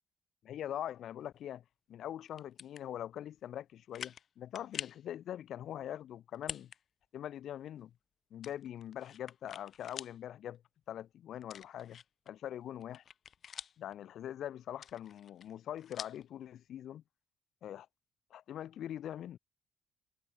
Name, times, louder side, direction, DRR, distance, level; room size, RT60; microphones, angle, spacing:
voice 1, 0.4-1.6 1.9-6.7 7.1-7.9 8.3-10.6 10.9-12.0 12.3-13.0 13.8-17.0 17.6-17.9 18.3-19.4, left 11 dB, 70° left, 1.0 m, -43 dB
sound 1, 2.3-2.8 3.4-3.5 3.9-4.3 4.5-5.0 6.3-6.8 7.2-7.3 8.4-10.2 10.5-10.6 11.4-12.3 12.7-13.9 14.7-16.2, left 8 dB, 55° left, 0.3 m, -46 dB
cardioid pair, 90°, 0 cm